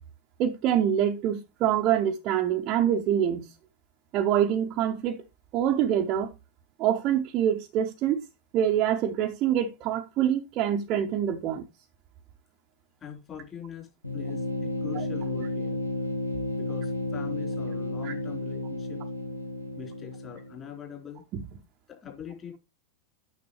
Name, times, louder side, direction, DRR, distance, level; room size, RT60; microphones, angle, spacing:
voice 1, 0.4-3.5 4.1-5.2 5.5-6.3 6.8-8.2 8.5-11.6 18.0-18.1, right 10 dB, 35° right, 0.8 m, -25 dB
voice 2, 13.0-13.9 14.1-15.8 16.5-19.0 19.8-21.2 21.9-22.6, left 8 dB, 25° left, 3.9 m, -42 dB
sound 1, 14.0-20.7, left 2 dB, 85° left, 1.3 m, -32 dB
9.5 x 6.7 x 3.2 m
figure-of-eight pair, 90°, 0 cm